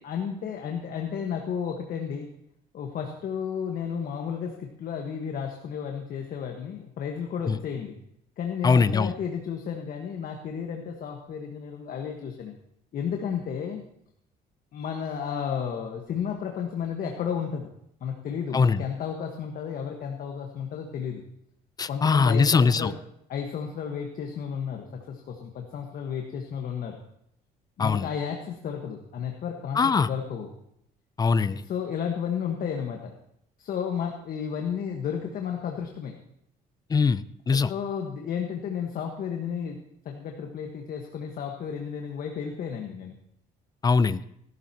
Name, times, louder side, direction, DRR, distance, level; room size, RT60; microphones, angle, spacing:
voice 1, 0.0-2.3 2.7-8.0 8.4-12.5 12.9-13.8 14.7-17.7 18.0-21.2 21.9-22.9 23.3-27.0 27.8-30.5 31.6-33.1 33.6-36.1 37.5-39.8 40.0-43.2, left 7 dB, 55° left, 2 dB, 1.5 m, -32 dB
voice 2, 8.6-9.1 18.5-18.8 21.8-22.9 27.8-28.1 29.8-30.1 31.2-31.6 36.9-37.7 43.8-44.2, left 5 dB, 25° left, 16 dB, 0.5 m, -22 dB
18.0 x 12.5 x 3.0 m, 0.74 s
cardioid pair, 110°, 17 cm